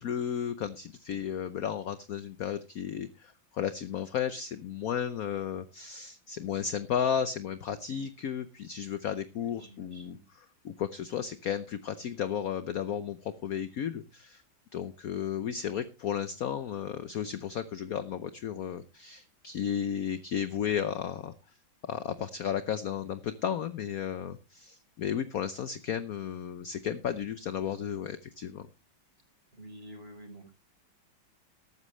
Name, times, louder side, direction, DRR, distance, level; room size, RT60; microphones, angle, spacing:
voice 1, 0.0-10.2 10.6-14.4 14.7-21.3 21.8-28.7, left 8 dB, 60° left, 12 dB, 1.0 m, -34 dB
voice 2, 9.3-10.2 29.5-30.5, right 1 dB, 30° right, 4 dB, 4.4 m, -49 dB
14.0 x 13.0 x 3.2 m, 0.30 s
omnidirectional pair, 2.2 m